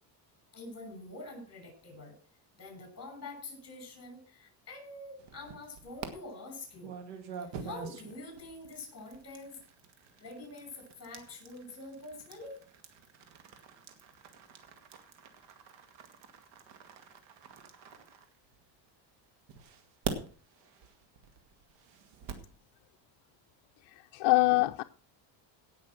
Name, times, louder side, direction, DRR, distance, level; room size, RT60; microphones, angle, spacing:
voice 1, 0.5-2.1 2.5-6.9 7.4-9.6 10.2-12.6, left 2 dB, 35° left, 6.7 m, -46 dB
sound 1, 5.2-6.1 6.8-18.8 19.5-22.5, right 7 dB, 75° right, 2.2 m, -45 dB
voice 2, 23.9-24.8, left 23 dB, 70° left, 0.7 m, -25 dB
18.0 x 6.1 x 6.1 m
cardioid pair, 130°, 44 cm